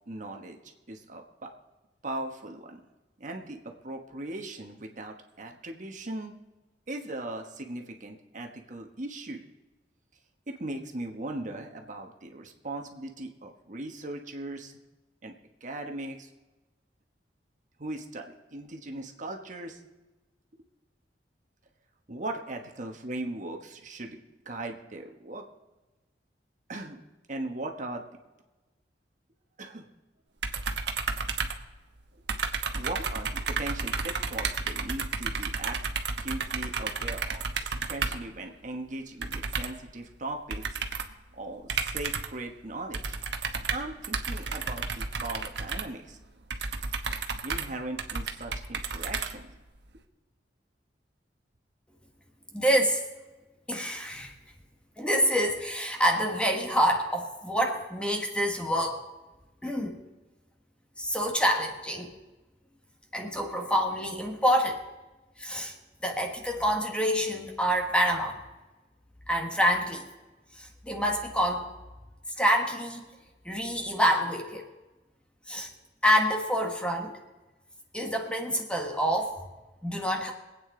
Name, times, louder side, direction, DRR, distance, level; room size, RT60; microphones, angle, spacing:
voice 1, 0.1-0.6 0.9-1.5 2.0-2.8 3.2-6.3 6.9-9.4 10.5-14.8 15.2-15.3 15.6-16.3 17.8-19.8 22.1-24.2 24.4-25.4 26.7-27.0 27.3-28.0 29.6-29.9 32.8-35.8 36.2-40.8 41.3-43.0 43.7-46.2 47.4-49.5, right 2 dB, 45° right, 3 dB, 1.2 m, -38 dB
sound 1, 30.4-32.0 32.3-38.3 39.2-39.9 40.5-41.2 41.7-42.4 42.9-49.8, right 4 dB, 75° right, 1.1 m, -32 dB
voice 2, 52.5-53.0 53.7-54.3 55.0-59.1 59.6-60.0 61.0-62.1 63.1-64.8 65.4-65.7 66.0-68.4 69.3-70.1 70.6-71.7 72.4-73.1 73.4-74.6 75.5-75.7 76.0-77.2 77.9-79.4 79.8-80.3, equal, 5° left, 2 dB, 1.5 m, -27 dB
23.5 x 8.8 x 3.8 m, 1.1 s
head